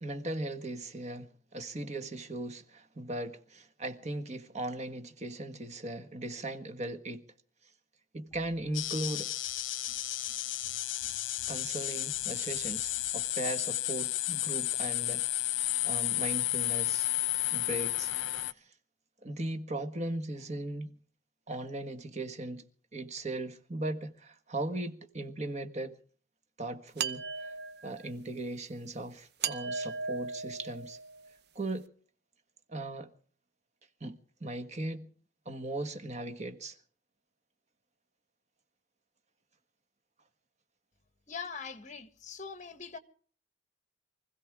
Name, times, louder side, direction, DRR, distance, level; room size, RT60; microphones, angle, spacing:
voice 1, 0.0-7.2 8.1-9.3 11.5-17.1 17.5-18.1 18.6-18.7 19.2-21.0 21.5-22.6 22.9-25.9 26.6-27.5 27.8-31.0 31.5-31.9 32.7-33.1 34.0-35.1 35.4-36.8, right 2 dB, 35° right, 1.5 m, -38 dB
sound 1, 8.7-18.5, left 15 dB, 75° left, 0.8 m, -32 dB
sound 2, 9.3-13.3, left 1 dB, 5° left, 3.8 m, -61 dB
sound 3, 27.0-28.1 29.4-31.3, right 5 dB, 55° right, 0.8 m, -37 dB
voice 2, 41.3-43.0, left 5 dB, 40° left, 1.5 m, -42 dB
24.5 x 16.0 x 3.6 m
head